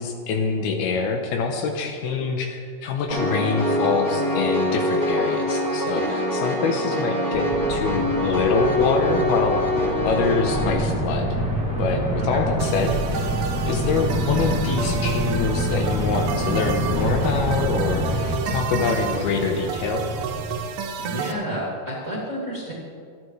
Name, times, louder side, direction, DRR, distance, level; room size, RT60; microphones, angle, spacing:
voice 1, 0.0-11.4 11.8-13.3 13.6-20.1, left 4 dB, 75° left, 3 dB, 2.7 m, -25 dB
Piano, 3.1-10.7, left 1 dB, 45° left, 0.4 m, -24 dB
sound 1, 7.3-20.7, right 1 dB, ahead, 1.9 m, -26 dB
sound 2, 12.6-21.3, right 6 dB, 80° right, 2.5 m, -31 dB
voice 2, 21.0-22.7, equal, 25° right, -6 dB, 2.1 m, -30 dB
26.0 x 9.6 x 3.2 m, 2.3 s
omnidirectional pair, 4.8 m